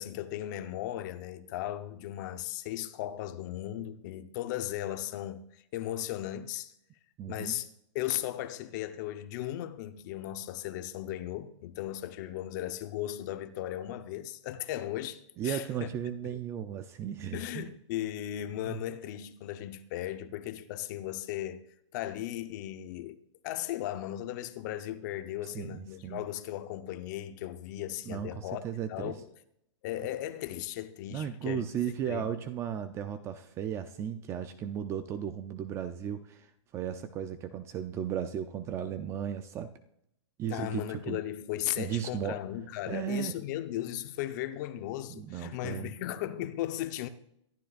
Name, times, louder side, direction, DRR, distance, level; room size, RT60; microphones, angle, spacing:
voice 1, 0.0-6.7 7.3-7.7 7.9-15.9 16.3-16.4 17.3-21.6 21.9-23.2 23.4-28.6 28.9-29.3 29.8-31.6 32.0-32.2 40.5-47.1, left 13 dB, 35° left, 0.9 m, -36 dB
voice 2, 7.2-7.5 15.4-17.7 18.7-18.8 25.5-26.2 28.0-29.1 31.1-36.5 36.7-39.7 40.4-41.2 41.8-42.4 42.9-43.3 45.1-45.9, right 9 dB, 15° right, 0.5 m, -35 dB
23.5 x 12.0 x 2.5 m
hypercardioid pair, 155°, 16 cm